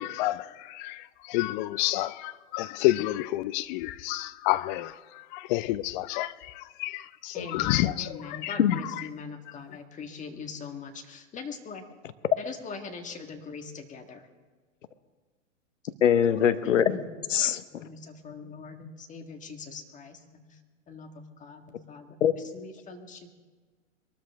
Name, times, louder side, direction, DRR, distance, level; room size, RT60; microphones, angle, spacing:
voice 1, 0.0-8.6, left 16 dB, 40° left, 0.6 m, -29 dB
voice 2, 7.3-11.8 12.4-14.3 16.9-17.1 17.7-20.6 20.9-22.2 22.5-23.3, left 4 dB, 20° left, 1.7 m, -42 dB
voice 3, 16.0-17.0 17.3-17.9 22.2-22.3, left 9 dB, 75° left, 1.1 m, -23 dB
23.0 x 13.0 x 3.5 m
hypercardioid pair, 110°, 38 cm